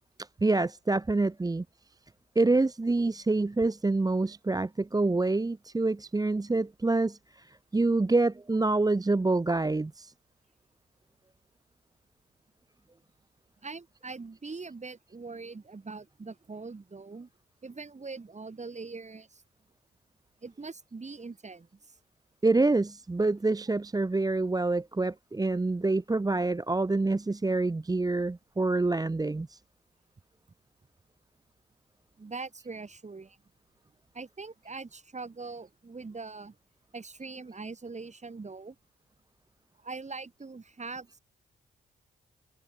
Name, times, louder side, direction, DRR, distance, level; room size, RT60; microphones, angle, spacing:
voice 1, 0.2-1.6 2.4-10.1 22.4-29.6, right 2 dB, 20° right, 0.8 m, -27 dB
voice 2, 13.6-17.3 17.6-19.4 20.4-21.7 32.2-33.4 34.1-36.6 36.9-38.7 39.8-41.2, right 4 dB, 35° right, 3.1 m, -42 dB
open air
supercardioid pair, 50°, 21 cm